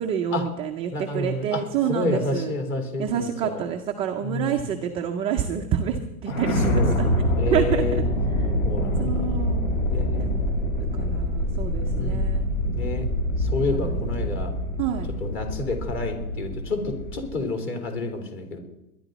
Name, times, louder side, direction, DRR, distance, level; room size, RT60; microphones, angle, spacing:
voice 1, 0.0-2.5 3.0-7.1 7.5-8.0 8.4-8.5 9.0-9.7 10.2-10.5 10.9-12.5 13.7-14.5 14.8-15.1, right 8 dB, 15° right, 3 dB, 0.4 m, -28 dB
voice 2, 0.9-1.6 1.9-3.6 4.2-4.7 6.7-7.0 7.4-8.0 8.6-9.3 9.9-10.3 12.0-12.3 12.8-13.1 13.4-14.5 15.2-18.6, left 2 dB, 30° left, 5 dB, 3.6 m, -29 dB
sound 1, 6.3-17.4, equal, 65° left, 4.7 m, -25 dB
21.5 x 11.0 x 4.0 m, 0.91 s
hypercardioid pair, 140°, 44 cm